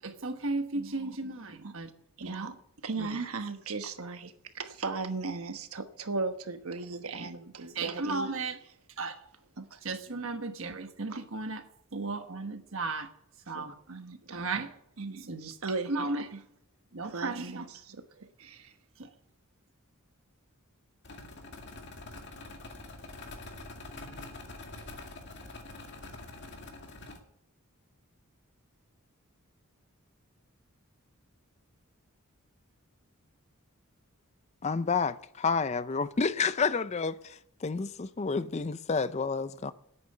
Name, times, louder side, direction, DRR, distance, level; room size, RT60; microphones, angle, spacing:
voice 1, 0.0-1.9 2.2-2.5 3.0-3.1 7.1-7.3 7.7-8.6 9.0-9.1 9.8-11.6 11.9-13.1 13.5-13.7 14.3-14.7 15.3-15.5 15.9-16.2 16.9-17.6 19.0-19.1, right 3 dB, 60° right, 1.4 m, -35 dB
voice 2, 0.7-1.1 1.6-1.7 2.2-2.5 2.8-8.3 9.6-9.8 11.1-11.2 13.5-14.5 15.0-16.4 17.0-18.7, right 3 dB, 80° right, 1.2 m, -37 dB
sound 1, 21.0-27.2, left 2 dB, 55° left, 2.1 m, -45 dB
voice 3, 34.6-39.7, left 5 dB, 30° left, 0.5 m, -30 dB
10.5 x 8.7 x 9.8 m
head